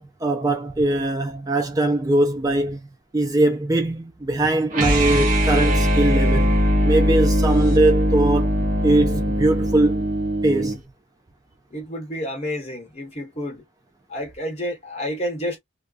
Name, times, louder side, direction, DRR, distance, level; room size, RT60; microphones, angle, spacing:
voice 1, 0.0-2.8 3.1-6.6 6.8-8.5 8.8-10.1 10.4-10.8, right 2 dB, 20° right, 0.3 m, -21 dB
sound 1, 4.7-10.8, equal, 40° right, 0.8 m, -20 dB
voice 2, 11.7-13.7 14.1-15.6, equal, 30° left, 1.1 m, -30 dB
2.4 x 2.2 x 2.3 m
head